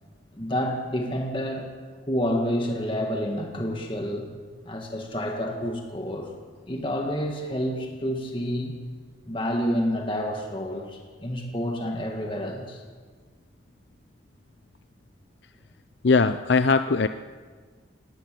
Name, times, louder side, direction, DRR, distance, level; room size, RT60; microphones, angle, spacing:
voice 1, 0.3-1.7 2.1-4.3 4.6-6.3 6.7-8.8 9.3-12.8, equal, 25° left, 2 dB, 1.9 m, -29 dB
voice 2, 16.0-17.1, left 4 dB, 70° left, 11 dB, 0.6 m, -20 dB
19.0 x 18.0 x 7.8 m, 1.5 s
head